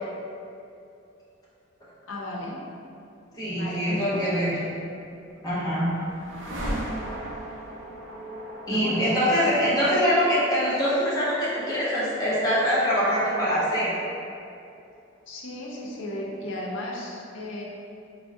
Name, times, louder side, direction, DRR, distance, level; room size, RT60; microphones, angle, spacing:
voice 1, 2.1-2.6 3.5-4.7 8.7-9.6 15.3-17.6, left 1 dB, 85° left, -3 dB, 0.5 m, -35 dB
voice 2, 3.4-4.7 5.4-5.9 8.7-13.9, equal, 20° left, -9 dB, 0.6 m, -24 dB
sound 1, 5.2-15.1, right 1 dB, 70° right, 0.5 m, -39 dB
3.5 x 2.0 x 2.5 m, 2.6 s
head